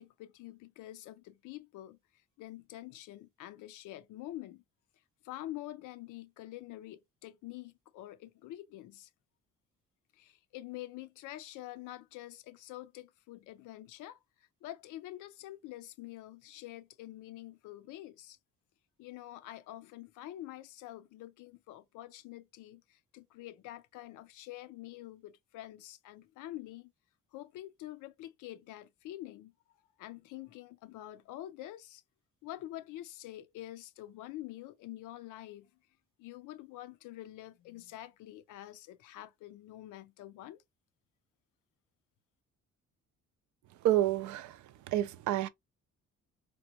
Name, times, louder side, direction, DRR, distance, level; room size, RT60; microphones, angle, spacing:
voice 1, 0.0-4.6 5.2-9.1 10.1-18.4 19.0-26.9 27.3-29.5 30.0-32.0 32.4-35.7 36.2-40.6, left 15 dB, 85° left, 0.5 m, -47 dB
voice 2, 43.8-45.5, right 13 dB, 75° right, 0.4 m, -29 dB
3.0 x 2.1 x 2.8 m
cardioid pair, 90°, 30 cm